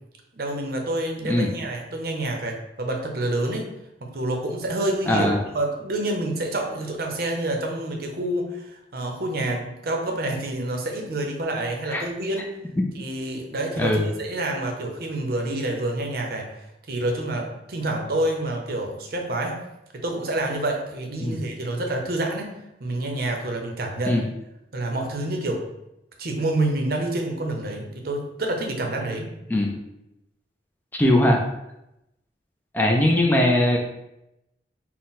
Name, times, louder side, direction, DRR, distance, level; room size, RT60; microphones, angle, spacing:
voice 1, 0.3-3.7 4.0-12.5 12.9-16.5 16.9-19.6 19.9-22.5 22.8-24.2 24.7-25.6 26.2-29.3, right 1 dB, 55° right, 2 dB, 0.6 m, -28 dB
voice 2, 5.1-5.4 11.9-12.0 12.8-12.9 13.8-14.1 21.2-21.4 24.1-24.2 29.5-29.7 30.9-31.4 32.7-33.8, left 1 dB, 10° left, 0 dB, 0.4 m, -20 dB
4.0 x 2.1 x 4.0 m, 0.88 s
head